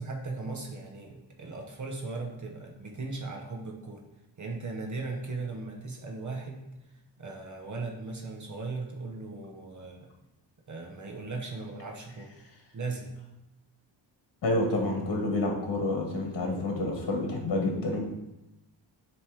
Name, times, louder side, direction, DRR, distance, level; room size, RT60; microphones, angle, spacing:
voice 1, 0.0-4.0 4.4-6.6 7.2-10.1 10.7-12.3 12.7-13.1, right 3 dB, 40° right, 1 dB, 0.9 m, -37 dB
voice 2, 14.4-18.0, left 2 dB, 50° left, 1 dB, 1.3 m, -28 dB
7.1 x 3.1 x 4.7 m, 0.93 s
cardioid pair, 100°, 46 cm